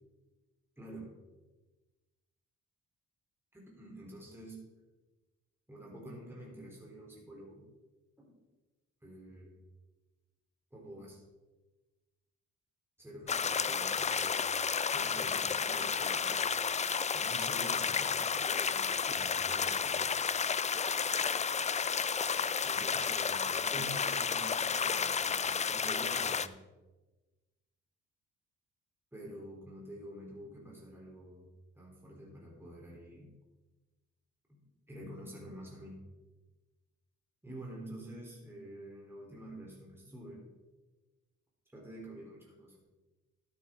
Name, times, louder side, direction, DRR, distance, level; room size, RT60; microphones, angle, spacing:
voice 1, 0.8-1.1 3.5-4.7 5.7-7.6 8.2-8.4 9.0-9.5 10.7-11.2 13.0-14.4 14.9-16.4 17.1-20.2 22.6-26.6 29.1-31.5 31.7-33.3 34.5-34.6 34.9-36.0 37.4-40.4 41.7-42.8, right 1 dB, 10° right, -3 dB, 3.4 m, -48 dB
sound 1, 13.3-26.5, left 6 dB, 25° left, 0.4 m, -32 dB
13.0 x 9.1 x 3.7 m, 1.2 s
cardioid pair, 90°, 30 cm